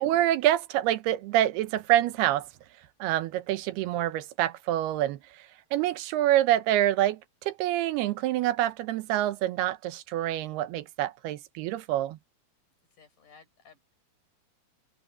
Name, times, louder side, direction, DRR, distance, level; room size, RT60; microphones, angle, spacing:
voice 1, 0.0-2.5 3.0-5.2 5.7-12.2, right 13 dB, 85° right, 2.9 m, -26 dB
voice 2, 12.9-13.9, left 5 dB, 55° left, 7.0 m, -57 dB
omnidirectional pair, 4.5 m